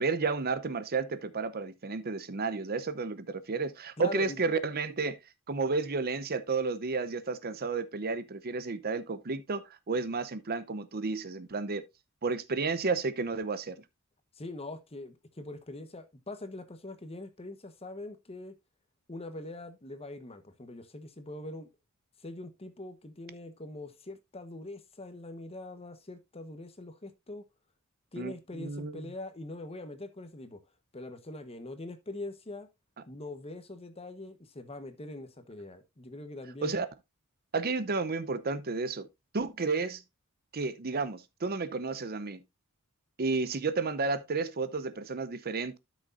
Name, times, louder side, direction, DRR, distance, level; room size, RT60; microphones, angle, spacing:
voice 1, 0.0-5.2 5.5-11.8 12.2-13.8 28.2-28.3 28.6-29.0 36.6-36.9 37.5-39.1 39.3-40.0 40.5-42.4 43.2-45.8, right 4 dB, 45° right, 0.7 m, -32 dB
voice 2, 4.0-4.4 14.3-18.6 19.1-21.7 22.2-27.4 28.1-30.6 30.9-32.7 33.1-36.8, left 2 dB, 30° left, 1.1 m, -43 dB
12.5 x 6.3 x 2.5 m
head